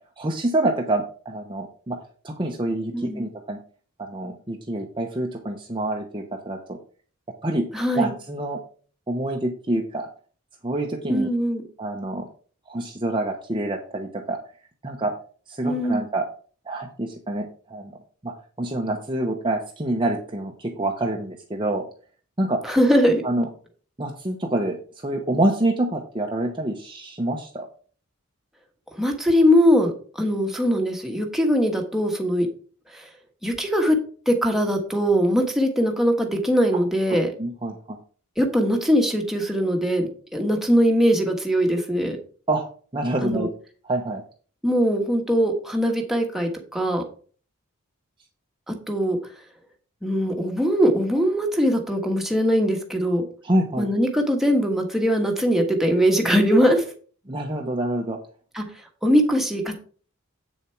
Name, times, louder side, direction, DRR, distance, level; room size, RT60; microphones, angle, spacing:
voice 1, 0.2-2.0 2.2-3.6 4.0-6.8 7.4-7.7 7.9-8.6 9.1-10.1 10.6-11.3 11.8-12.2 12.7-14.4 14.8-15.1 15.5-16.2 16.7-17.9 18.2-21.8 22.4-22.6 23.2-23.5 24.0-27.7 37.1-38.0 42.5-42.7 42.9-43.5 43.8-44.2 53.4-53.9 56.6-56.7 57.3-58.2, right 1 dB, 20° right, 1 dB, 0.9 m, -26 dB
voice 2, 2.9-3.3 7.7-8.1 11.1-11.6 15.6-16.0 22.6-23.2 28.9-32.5 32.9-33.1 33.4-34.0 34.2-37.3 38.4-42.2 43.2-43.5 44.6-47.0 48.7-49.2 50.0-53.2 53.8-56.8 58.5-58.6 59.0-59.7, equal, ahead, 1 dB, 1.4 m, -21 dB
8.2 x 7.0 x 4.5 m, 0.42 s
head